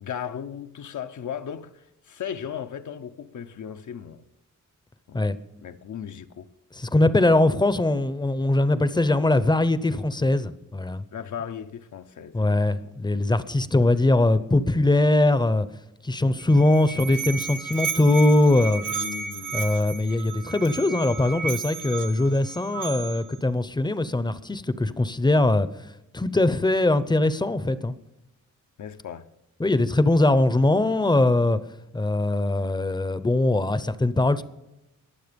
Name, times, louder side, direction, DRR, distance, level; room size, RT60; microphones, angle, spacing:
voice 1, 0.0-4.2 5.1-5.2 5.6-6.5 11.1-12.9 18.8-19.7 28.8-29.3, left 8 dB, 70° left, 0.8 m, -36 dB
voice 2, 6.7-11.0 12.3-15.7 16.0-18.8 19.5-25.7 26.1-27.9 29.6-31.6 31.9-34.4, left 2 dB, 15° left, 0.7 m, -21 dB
Musical instrument, 16.4-23.4, right 5 dB, 75° right, 1.5 m, -33 dB
22.0 x 7.6 x 5.2 m
wide cardioid pair, 145°, 31 cm